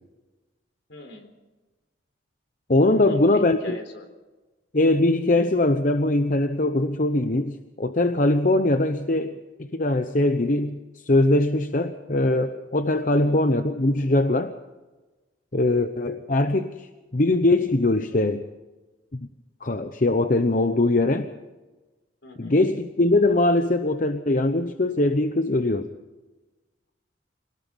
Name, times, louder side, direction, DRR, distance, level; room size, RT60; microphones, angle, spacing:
voice 1, 0.9-1.3 2.8-4.1 13.0-13.5 22.2-22.7, left 1 dB, 70° left, 6 dB, 4.0 m, -40 dB
voice 2, 2.7-3.8 4.7-9.4 9.7-10.8 11.1-14.5 15.5-18.4 19.1-19.2 19.6-21.3 22.4-25.9, left 2 dB, 45° left, 8 dB, 0.9 m, -21 dB
26.0 x 19.0 x 5.4 m, 1.2 s
head